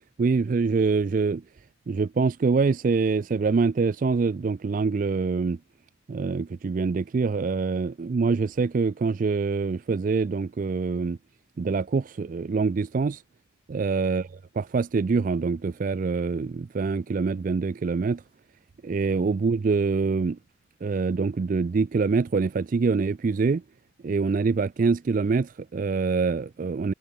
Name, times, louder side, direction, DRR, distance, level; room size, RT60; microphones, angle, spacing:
voice 1, 0.2-1.4 1.9-5.6 6.1-11.2 11.6-13.2 13.7-14.3 14.6-18.2 18.8-20.4 20.8-23.6 24.0-26.9, right 4 dB, 40° right, 0.3 m, -25 dB
head